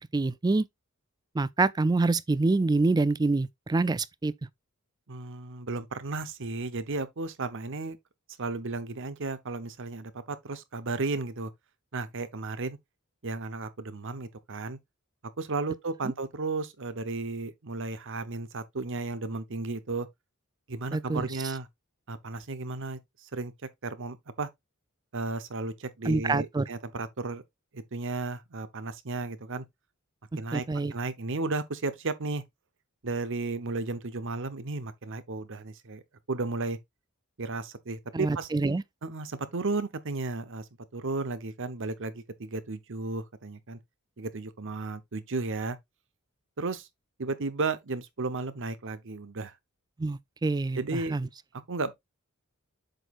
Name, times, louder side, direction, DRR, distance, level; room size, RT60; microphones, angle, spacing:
voice 1, 0.1-0.7 1.3-4.3 20.9-21.3 26.0-26.7 30.5-30.9 38.1-38.8 50.0-51.3, right 3 dB, 20° right, 0.4 m, -26 dB
voice 2, 5.1-8.0 8.4-11.5 11.9-12.8 13.2-14.8 15.4-20.1 20.7-21.7 22.1-23.5 23.8-24.5 25.1-27.4 27.7-29.6 30.4-30.6 30.9-32.4 33.0-36.0 36.3-36.8 37.4-38.5 39.0-43.8 44.2-45.8 46.6-46.9 47.2-49.5 50.7-51.2 51.7-51.9, right 3 dB, 60° right, 0.9 m, -34 dB
7.8 x 6.2 x 2.5 m
head